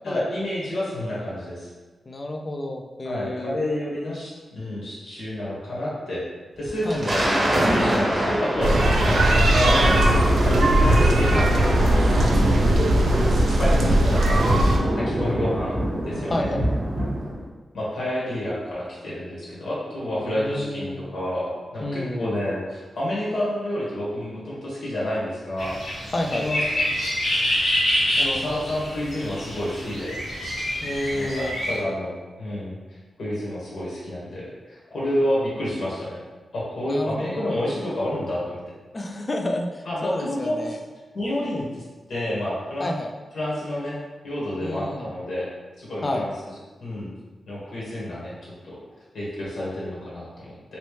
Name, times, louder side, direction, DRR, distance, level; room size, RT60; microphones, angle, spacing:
voice 1, 0.0-1.7 3.0-6.3 6.6-7.2 7.7-10.0 10.2-11.6 13.2-14.4 14.9-15.8 16.0-16.5 17.7-25.8 26.3-26.6 28.2-30.1 31.1-32.1 32.4-36.2 36.5-38.6 39.8-40.6 41.1-41.8 42.1-43.0 43.3-44.0 44.2-45.5 45.8-46.3 46.8-47.1 47.5-48.8 49.1-50.8, left 1 dB, 70° left, -7 dB, 1.3 m, -29 dB
voice 2, 2.1-3.6 6.9-7.2 9.0-9.2 11.3-11.5 15.0-15.4 16.3-16.6 20.2-21.0 21.8-22.4 26.1-26.5 30.8-31.5 36.9-37.5 38.9-40.8 42.8-43.1 44.6-45.2 46.0-46.3, left 1 dB, 30° left, 3 dB, 0.3 m, -30 dB
Thunder, 6.7-17.4, right 1 dB, 25° right, 0.8 m, -24 dB
sound 1, 8.6-14.8, right 1 dB, 70° right, 0.4 m, -19 dB
sound 2, 25.6-31.8, equal, 90° left, 1.5 m, -26 dB
3.1 x 2.9 x 3.1 m, 1.3 s
wide cardioid pair, 150°, 0 cm